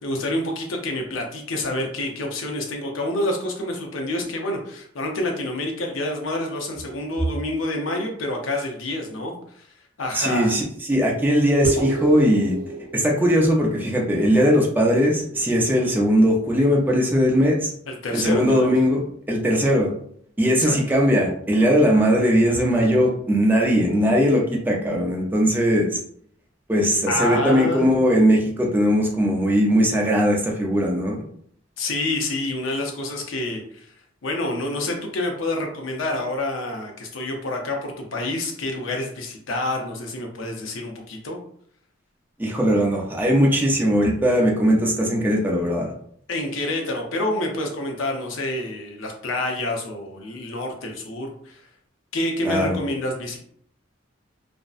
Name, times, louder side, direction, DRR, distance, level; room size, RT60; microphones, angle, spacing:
voice 1, 0.0-9.7 10.0-10.5 17.9-18.7 20.4-20.8 27.1-27.9 31.8-33.9 34.2-41.4 46.3-51.6 52.1-53.4, left 1 dB, 85° left, 2 dB, 0.6 m, -28 dB
voice 2, 10.1-10.6 10.9-12.5 12.9-17.7 18.1-19.0 19.3-19.9 20.4-26.0 26.7-31.2 42.4-45.9 52.4-52.8, equal, 10° right, -2 dB, 0.4 m, -19 dB
sound 1, 11.6-16.4, right 2 dB, 85° right, 0.7 m, -32 dB
2.5 x 2.1 x 2.4 m, 0.64 s
head